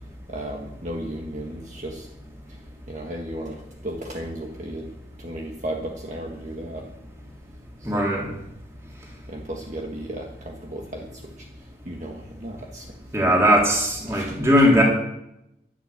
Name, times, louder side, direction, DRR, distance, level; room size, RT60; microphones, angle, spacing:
voice 1, 0.3-2.1 2.5-4.9 5.2-6.9 7.8-8.2 9.3-12.9 13.2-13.4 14.1-14.4, right 1 dB, 40° right, 0 dB, 1.7 m, -35 dB
voice 2, 7.8-8.3 13.1-14.8, equal, 15° right, -2 dB, 3.6 m, -19 dB
11.5 x 11.5 x 8.4 m, 0.84 s
head